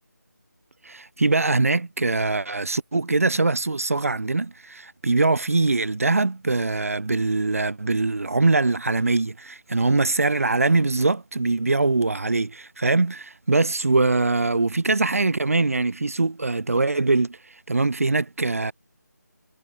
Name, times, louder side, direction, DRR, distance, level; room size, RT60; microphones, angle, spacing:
voice 1, 0.8-17.4 17.7-18.7, right 3 dB, 50° right, 2.3 m, -22 dB
figure-of-eight pair, 175°, 10 cm